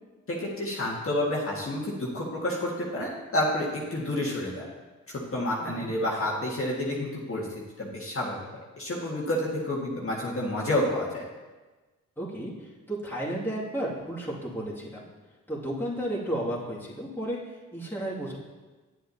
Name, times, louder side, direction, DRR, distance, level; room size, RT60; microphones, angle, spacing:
voice 1, 0.3-4.7 5.3-7.5 7.8-8.4 8.8-11.2, left 1 dB, 40° left, -5 dB, 1.8 m, -29 dB
voice 2, 12.2-15.1 15.5-18.4, right 1 dB, 5° left, -6 dB, 2.3 m, -33 dB
8.9 x 7.9 x 2.8 m, 1.3 s
supercardioid pair, 50°, 35 cm